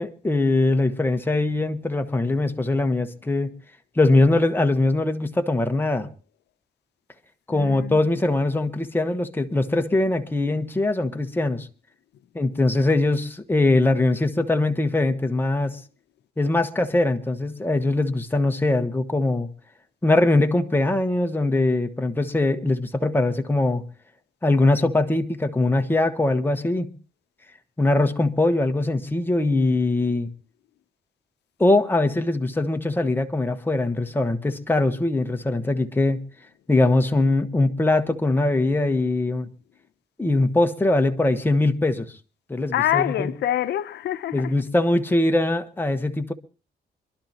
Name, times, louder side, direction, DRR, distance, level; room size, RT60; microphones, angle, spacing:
voice 1, 0.0-3.5 4.0-6.1 7.5-11.7 12.3-15.8 16.4-19.5 20.0-23.8 24.4-26.9 27.8-30.3 31.6-36.2 36.7-39.5 40.2-42.1 42.5-43.3 44.3-46.3, left 2 dB, 10° left, 1.2 m, -22 dB
voice 2, 7.5-8.0 42.5-44.5, left 12 dB, 85° left, 0.7 m, -26 dB
26.0 x 12.0 x 2.9 m
cardioid pair, 100°, 17 cm